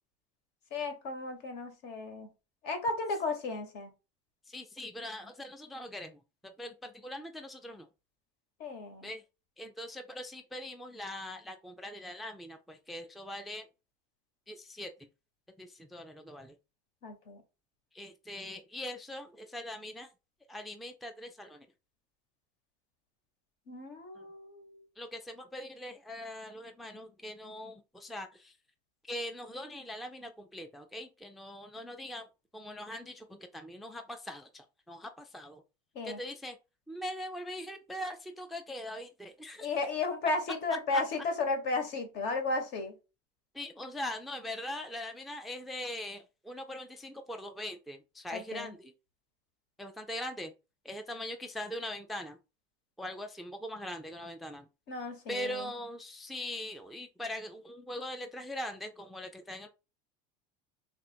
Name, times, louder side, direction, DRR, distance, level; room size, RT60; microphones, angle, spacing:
voice 1, 0.7-2.3 2.6-3.9 8.6-9.1 17.0-17.4 23.7-24.9 35.9-36.2 39.6-43.0 48.3-48.7 54.9-55.7, left 3 dB, 60° left, 6 dB, 1.4 m, -34 dB
voice 2, 4.4-7.9 9.0-9.2 9.6-13.7 14.5-15.1 15.6-16.6 17.9-20.1 20.5-21.7 24.2-24.3 25.0-28.6 29.0-32.3 32.5-35.6 36.0-36.6 36.9-39.7 40.9-41.0 43.5-48.9 49.8-50.5 50.8-52.4 53.0-54.7 55.3-59.7, left 1 dB, ahead, 6 dB, 0.4 m, -41 dB
3.4 x 2.4 x 4.3 m, 0.29 s
supercardioid pair, 115°, 20 cm